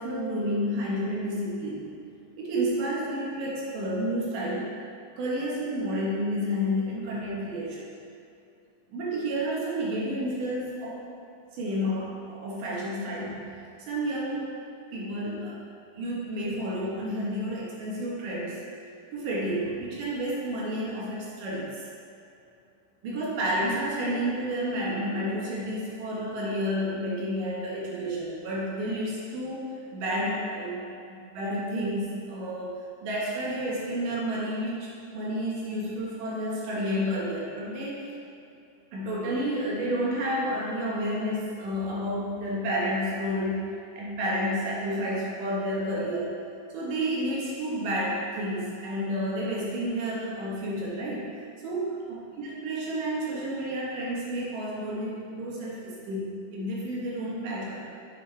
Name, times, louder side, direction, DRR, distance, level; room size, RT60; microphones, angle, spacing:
voice 1, 0.0-1.9 2.4-4.7 5.2-7.9 8.9-11.0 11.5-13.5 13.9-14.5 14.9-15.6 15.9-18.6 19.1-21.8 23.0-32.7 33.0-38.1 38.9-46.3 46.7-51.4 51.6-57.8, equal, 70° right, -5 dB, 2.7 m, -30 dB
7.2 x 6.4 x 3.3 m, 2.6 s
omnidirectional pair, 4.2 m